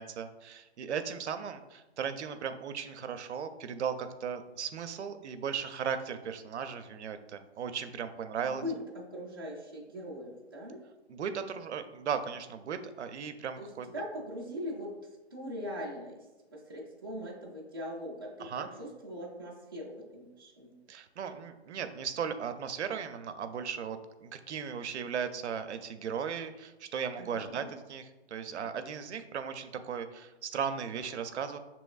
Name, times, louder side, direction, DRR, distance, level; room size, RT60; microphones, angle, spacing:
voice 1, 0.0-8.6 11.1-13.9 18.4-18.7 20.9-31.6, right 7 dB, 90° right, 9 dB, 0.6 m, -37 dB
voice 2, 8.4-10.8 13.6-16.2 16.5-20.8 27.2-27.7, equal, 20° right, -6 dB, 0.4 m, -41 dB
6.1 x 2.9 x 2.3 m, 1.1 s
hypercardioid pair, 175°, 33 cm